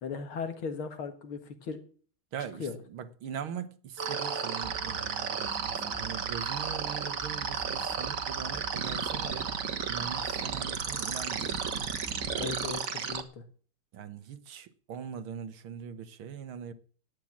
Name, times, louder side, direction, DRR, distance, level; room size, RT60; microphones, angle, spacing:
voice 1, 0.0-1.8 2.6-2.8 12.4-13.4, left 5 dB, 75° left, 2.6 m, -37 dB
voice 2, 2.3-9.5 9.9-11.6 13.9-16.7, right 8 dB, 75° right, 2.0 m, -41 dB
sound 1, 4.0-13.2, right 6 dB, 45° right, 1.5 m, -33 dB
sound 2, 4.6-12.7, right 5 dB, 5° right, 1.6 m, -45 dB
11.5 x 9.4 x 7.3 m
omnidirectional pair, 2.3 m